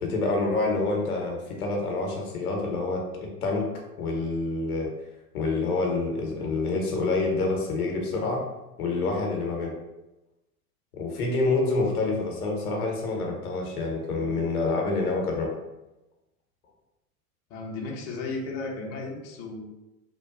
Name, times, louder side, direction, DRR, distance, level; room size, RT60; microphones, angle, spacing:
voice 1, 0.0-3.7 4.0-4.9 5.3-8.4 8.8-9.7 10.9-15.5, left 3 dB, 80° left, 0 dB, 0.8 m, -27 dB
voice 2, 17.5-19.7, left 3 dB, 35° left, -1 dB, 0.6 m, -34 dB
2.8 x 2.2 x 2.4 m, 0.98 s
figure-of-eight pair, 85°, 44 cm